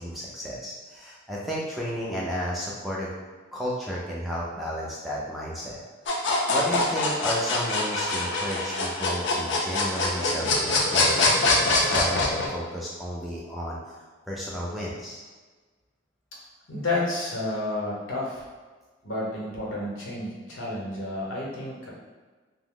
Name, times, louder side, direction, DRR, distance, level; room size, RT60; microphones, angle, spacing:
voice 1, 0.0-3.1 3.5-5.8 6.5-14.0 14.3-15.2, equal, ahead, -6 dB, 0.3 m, -33 dB
sound 1, 6.1-12.5, left 2 dB, 65° left, 0.4 m, -24 dB
voice 2, 16.7-18.5 19.0-21.9, left 2 dB, 80° left, -4 dB, 0.8 m, -30 dB
2.7 x 2.0 x 3.6 m, 1.4 s
head